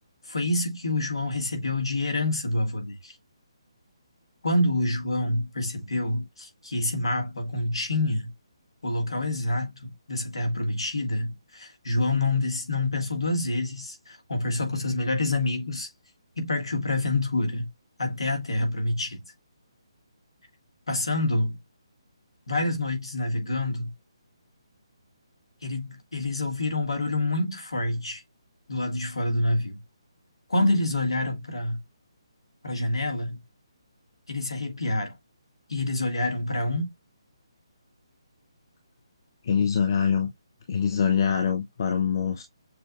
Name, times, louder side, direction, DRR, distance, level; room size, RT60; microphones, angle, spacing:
voice 1, 0.2-3.2 4.4-8.3 8.8-15.9 16.4-17.7 18.0-19.2 20.9-21.6 22.5-23.9 25.6-28.2 28.7-29.8 30.5-31.8 32.6-33.4 34.3-35.2 35.7-36.9, left 2 dB, 70° left, 1.8 m, -27 dB
voice 2, 39.4-40.3 40.7-42.4, left 7 dB, 45° left, 0.8 m, -24 dB
6.8 x 2.5 x 2.5 m
figure-of-eight pair, 145°, 3 cm